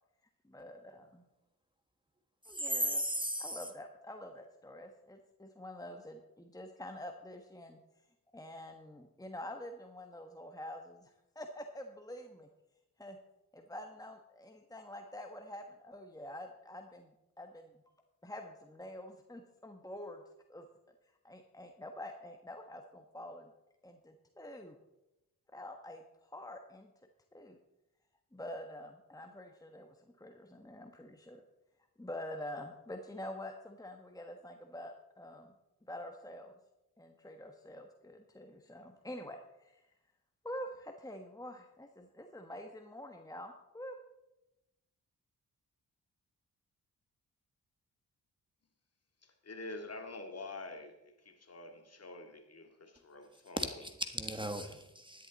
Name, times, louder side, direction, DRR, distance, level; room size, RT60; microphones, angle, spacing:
voice 1, 0.4-1.2 2.4-3.0 3.4-7.8 8.3-12.5 13.0-13.2 13.5-17.1 17.4-17.7 18.2-20.2 20.5-20.6 21.2-23.5 23.8-24.8 25.5-26.9 27.3-27.6 28.3-31.4 32.0-35.5 35.8-36.6 37.0-39.8 40.4-44.0, left 1 dB, 10° left, 1.4 m, -47 dB
voice 2, 2.5-3.7 53.6-55.3, equal, 15° right, 1.4 m, -36 dB
voice 3, 49.2-53.8, left 2 dB, 40° left, 2.2 m, -47 dB
12.5 x 10.5 x 4.1 m
supercardioid pair, 50°, 37 cm